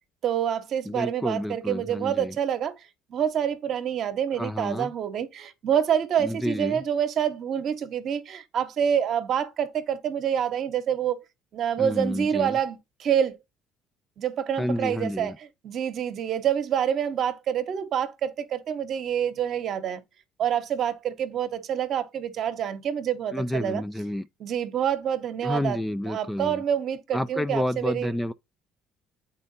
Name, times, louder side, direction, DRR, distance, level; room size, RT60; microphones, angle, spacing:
voice 1, 0.2-2.7 3.1-11.2 11.5-13.4 14.2-15.3 15.6-20.0 20.4-23.8 24.4-25.8 26.1-28.1, right 9 dB, 60° right, 0.9 m, -27 dB
voice 2, 0.9-2.4 4.4-4.9 6.2-6.8 11.8-12.6 14.6-15.4 23.3-24.3 25.4-26.6 27.1-28.3, left 1 dB, 10° left, 0.4 m, -29 dB
8.3 x 4.4 x 2.7 m
supercardioid pair, 70°, 0 cm